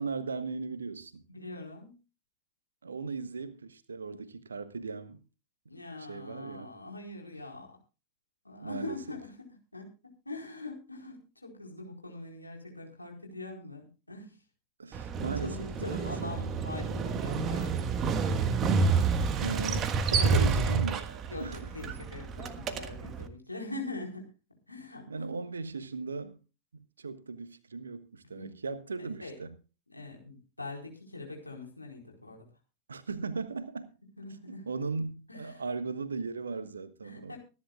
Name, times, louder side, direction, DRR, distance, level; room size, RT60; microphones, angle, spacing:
voice 1, 0.0-1.2 2.8-5.2 6.0-6.7 8.6-9.0 14.8-16.3 19.4-21.6 25.1-26.4 26.7-29.5 32.9-33.9 34.5-37.3, right 4 dB, 75° right, 1.4 m, -37 dB
voice 2, 1.3-1.9 5.7-7.8 8.4-9.3 9.7-9.9 10.2-14.4 15.2-17.9 20.2-20.8 21.3-24.3 24.7-25.2 28.3-28.5 29.0-29.3 29.9-32.4 34.2-34.6 35.3-35.6 37.0-37.4, left 2 dB, 85° left, 4.3 m, -42 dB
Motorcycle, 14.9-23.3, right 5 dB, 30° right, 1.5 m, -29 dB
24.5 x 11.0 x 2.4 m
figure-of-eight pair, 90°, 0 cm